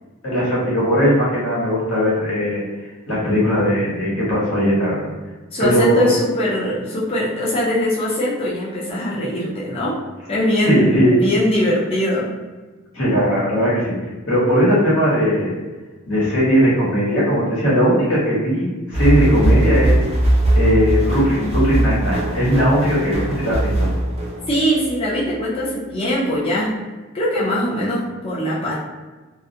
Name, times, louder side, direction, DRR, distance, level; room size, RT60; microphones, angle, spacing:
voice 1, 0.2-2.6 3.1-5.1 5.6-6.1 10.6-11.2 12.9-13.9 14.3-15.6 16.1-20.0 20.5-23.9, equal, 80° left, -7 dB, 1.1 m, -18 dB
voice 2, 5.5-10.0 10.3-12.3 24.5-26.8 27.1-28.8, equal, 30° left, -8 dB, 0.4 m, -21 dB
sound 1, 18.9-24.9, right 1 dB, 30° right, 0.5 m, -20 dB
2.3 x 2.0 x 2.6 m, 1.3 s
head